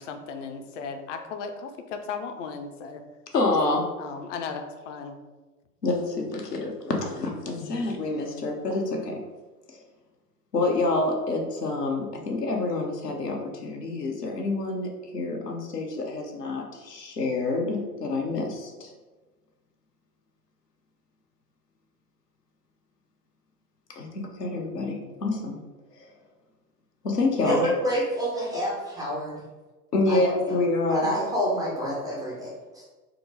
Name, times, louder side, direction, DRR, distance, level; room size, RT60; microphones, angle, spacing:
voice 1, 0.0-3.0 4.0-5.2 7.6-7.8, left 5 dB, 50° left, 6 dB, 0.6 m, -36 dB
voice 2, 3.3-3.8 5.8-9.2 9.7-9.8 10.5-18.9 24.0-24.1 24.4-25.6 26.0-26.1 27.0-27.7 29.9-31.1, left 2 dB, 85° left, 1 dB, 0.8 m, -27 dB
voice 3, 27.4-29.3 30.1-30.6 30.9-32.8, equal, 10° right, -6 dB, 0.3 m, -28 dB
4.4 x 2.0 x 3.8 m, 1.2 s
figure-of-eight pair, 90°, 46 cm